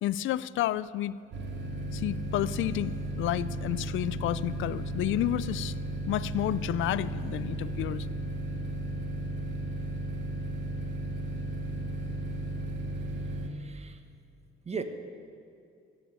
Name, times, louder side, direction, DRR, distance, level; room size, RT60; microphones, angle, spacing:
voice 1, 0.0-1.1 1.9-5.7 6.1-8.1, left 13 dB, 80° left, 18 dB, 0.5 m, -30 dB
sound 1, 1.3-13.5, right 1 dB, 65° right, 1.8 m, -34 dB
voice 2, 13.4-14.0 14.6-14.8, right 5 dB, 30° right, 8 dB, 1.2 m, -37 dB
15.0 x 8.5 x 8.2 m, 2.5 s
cardioid pair, 90°, 20 cm